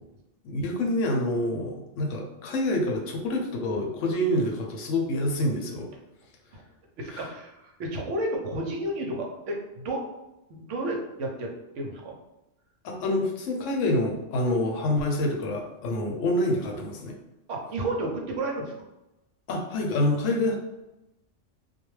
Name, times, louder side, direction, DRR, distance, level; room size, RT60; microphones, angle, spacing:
voice 1, 0.4-5.9 7.1-7.3 12.8-17.1 19.5-20.6, left 1 dB, 80° left, 1 dB, 0.9 m, -27 dB
voice 2, 7.0-10.0 10.5-12.2 17.5-18.7, right 1 dB, 75° right, 0 dB, 0.9 m, -32 dB
2.2 x 2.2 x 3.0 m, 0.93 s
omnidirectional pair, 1.3 m